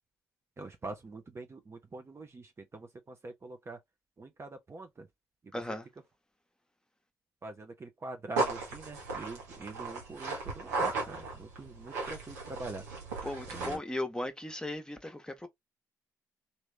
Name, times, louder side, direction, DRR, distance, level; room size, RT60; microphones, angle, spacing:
voice 1, 0.6-2.5 2.7-3.8 4.2-5.1 7.4-12.8 13.5-13.8, right 3 dB, 30° right, 0.8 m, -44 dB
voice 2, 5.5-5.9 13.2-15.5, left 1 dB, 10° left, 1.1 m, -37 dB
sound 1, 8.4-13.8, right 3 dB, 80° right, 1.1 m, -36 dB
3.0 x 2.7 x 3.3 m
figure-of-eight pair, 40°, 9 cm